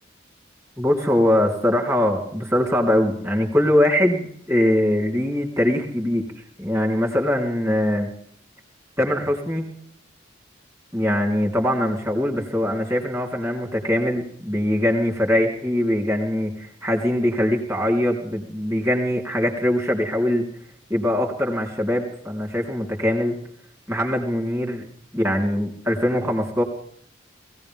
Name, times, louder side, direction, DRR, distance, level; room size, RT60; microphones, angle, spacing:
voice 1, 0.8-6.2 6.6-8.1 9.0-9.7 10.9-20.4 20.9-23.4 23.9-24.8 25.1-26.6, left 1 dB, 15° right, 0 dB, 3.8 m, -22 dB
21.5 x 17.0 x 3.6 m, 0.63 s
head